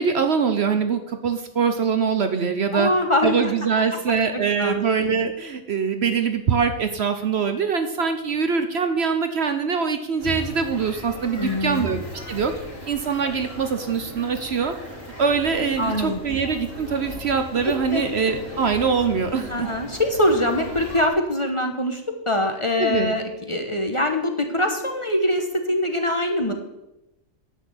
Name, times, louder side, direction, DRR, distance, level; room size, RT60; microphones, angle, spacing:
voice 1, 0.0-2.9 3.2-12.5 12.9-14.7 15.2-19.7 22.8-23.2, right 6 dB, 55° right, 8 dB, 1.0 m, -23 dB
voice 2, 2.7-3.5 4.3-4.8 11.4-11.9 15.8-16.2 17.9-18.0 19.5-22.0 22.3-26.5, left 1 dB, 25° left, 4 dB, 1.2 m, -23 dB
sound 1, 10.2-21.1, equal, 45° left, 3.1 m, -37 dB
10.5 x 6.5 x 8.1 m, 0.93 s
omnidirectional pair, 1.4 m